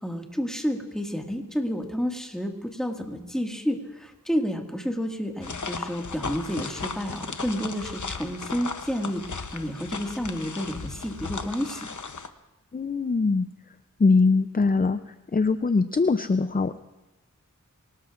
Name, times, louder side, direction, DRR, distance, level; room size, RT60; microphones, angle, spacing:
voice 1, 0.0-11.9, equal, ahead, 1 dB, 1.8 m, -30 dB
sound 1, 5.4-12.3, left 4 dB, 65° left, 0.8 m, -36 dB
voice 2, 12.7-13.5 14.0-15.0 15.3-16.8, left 4 dB, 30° left, 11 dB, 0.5 m, -22 dB
23.5 x 18.5 x 2.5 m, 1.0 s
wide cardioid pair, 40°, 32 cm